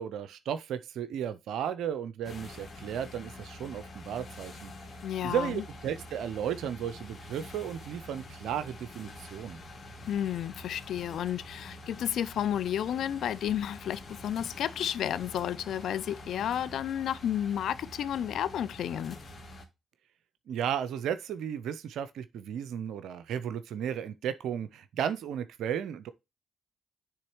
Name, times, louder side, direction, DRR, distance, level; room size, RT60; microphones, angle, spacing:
voice 1, 0.0-4.7 5.2-9.6 20.5-26.1, right 9 dB, 70° right, 0.4 m, -34 dB
sound 1, 2.2-19.7, left 1 dB, 50° left, 1.6 m, -46 dB
voice 2, 5.0-5.6 10.1-19.2, left 10 dB, 70° left, 0.4 m, -32 dB
9.8 x 3.5 x 3.0 m
hypercardioid pair, 50°, 0 cm